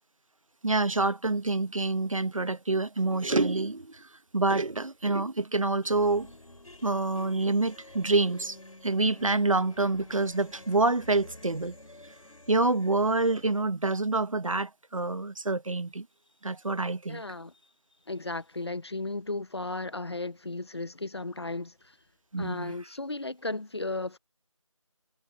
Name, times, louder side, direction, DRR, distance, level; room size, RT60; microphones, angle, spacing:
voice 1, 0.6-6.3 6.8-8.6 8.8-11.8 12.5-16.1 16.4-17.2 22.3-22.7, right 3 dB, 70° right, 1.1 m, -27 dB
sound 1, 5.8-13.6, left 2 dB, 80° left, 3.6 m, -50 dB
voice 2, 17.1-17.5 18.1-22.0 22.4-24.2, left 2 dB, 50° left, 1.2 m, -35 dB
figure-of-eight pair, 175°, 18 cm